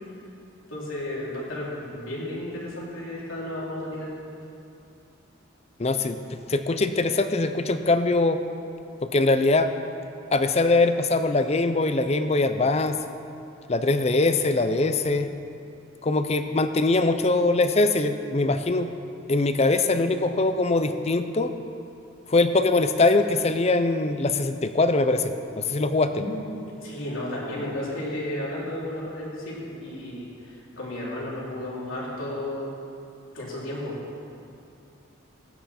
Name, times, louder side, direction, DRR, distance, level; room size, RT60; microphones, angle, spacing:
voice 1, 0.7-4.1 26.1-32.7 33.3-34.0, left 1 dB, 75° left, -5 dB, 3.2 m, -33 dB
voice 2, 5.8-6.2 6.5-8.4 9.0-9.7 10.3-13.0 13.7-15.3 16.0-18.9 19.3-21.5 22.3-26.2, left 2 dB, 30° left, 9 dB, 0.5 m, -22 dB
16.0 x 10.5 x 4.3 m, 2.6 s
head